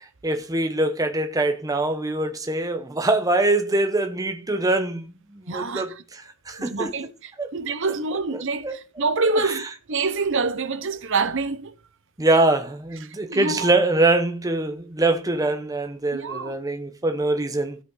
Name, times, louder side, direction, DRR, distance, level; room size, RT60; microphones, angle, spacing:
voice 1, 0.2-5.1 5.4-6.9 7.4-7.5 8.3-8.8 9.4-9.6 12.2-17.8, right 2 dB, 15° right, 0.8 m, -23 dB
voice 2, 5.5-6.0 6.5-11.7 13.0-13.7 16.1-16.6, right 4 dB, 55° right, 0.9 m, -27 dB
15.0 x 5.5 x 3.9 m
head